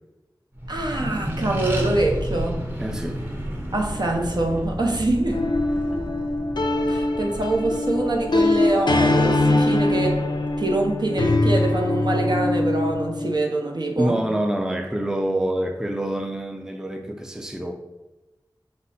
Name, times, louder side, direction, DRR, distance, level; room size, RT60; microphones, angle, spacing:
Accelerating revving vroom, 0.5-11.5, equal, 25° right, 0.9 m, -32 dB
voice 1, 0.7-2.7 3.7-5.5 6.9-10.3 10.6-14.2, right 2 dB, 60° right, 2 dB, 0.7 m, -24 dB
voice 2, 2.8-3.2 14.0-17.7, right 1 dB, 5° right, 4 dB, 0.4 m, -26 dB
sound 1, 5.3-13.4, left 2 dB, 65° left, 0.5 m, -22 dB
5.2 x 2.1 x 4.2 m, 1.0 s
wide cardioid pair, 60°, 8 cm